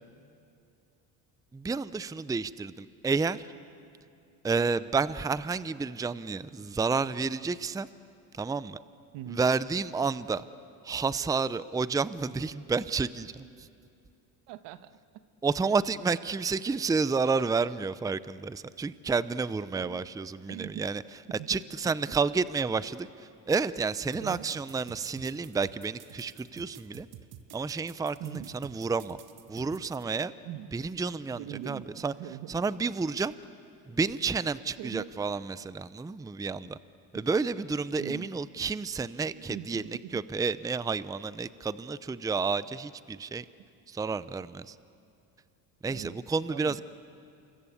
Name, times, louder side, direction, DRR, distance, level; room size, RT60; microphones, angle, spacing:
voice 1, 1.5-3.4 4.4-7.9 8.3-8.8 9.3-10.4 10.8-13.7 15.4-21.0 21.3-23.1 23.5-27.1 27.5-29.2 29.5-30.3 30.7-32.1 32.5-33.3 33.9-36.8 37.1-39.8 40.1-43.4 43.9-44.8 45.8-46.8, right 4 dB, 10° right, 16 dB, 0.6 m, -30 dB
voice 2, 9.1-9.4 14.5-14.9 19.7-20.1 20.5-20.8 21.4-21.6 21.8-21.9 24.2-24.5 28.2-28.5 30.4-30.7 31.3-32.5 34.8-35.1 37.1-37.5 38.0-38.3 39.3-40.2 45.9-46.2 46.5-46.8, right 13 dB, 75° right, 12 dB, 1.3 m, -41 dB
sound 1, 24.1-30.0, right 10 dB, 60° right, 1.6 m, -49 dB
29.0 x 22.5 x 8.5 m, 2.5 s
supercardioid pair, 90°, 43 cm